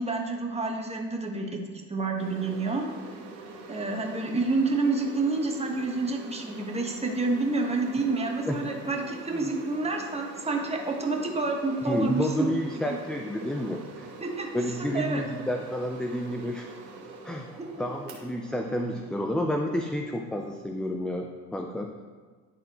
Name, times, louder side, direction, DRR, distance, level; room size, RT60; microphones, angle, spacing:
voice 1, 0.0-1.6 1.9-2.9 3.7-12.5 12.9-13.0 14.2-14.5 14.8-15.2, right 3 dB, 15° right, 1 dB, 1.3 m, -28 dB
sound 1, 2.2-20.6, right 3 dB, 85° right, 1.3 m, -45 dB
voice 2, 11.9-14.1 14.5-16.7 17.2-17.5 17.8-21.9, left 1 dB, ahead, 3 dB, 0.3 m, -30 dB
11.0 x 4.2 x 3.0 m, 1.5 s
hypercardioid pair, 75°, 38 cm